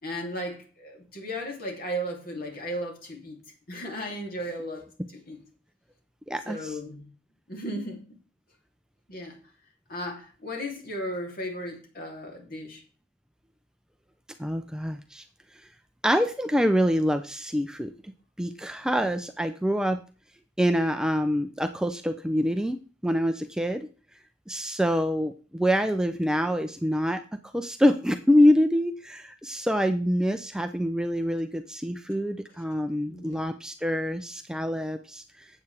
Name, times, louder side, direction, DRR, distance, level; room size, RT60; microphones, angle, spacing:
voice 1, 0.0-3.4 3.7-4.9 5.1-5.4 6.4-7.1 7.5-8.2 9.1-9.4 9.9-12.8 19.0-19.1 33.1-33.4, equal, 50° left, 3.0 m, -35 dB
voice 2, 6.3-6.8 14.4-15.2 16.0-17.9 18.4-20.0 20.6-23.9 24.5-35.5, equal, 5° right, 0.5 m, -26 dB
12.0 x 8.3 x 3.4 m
head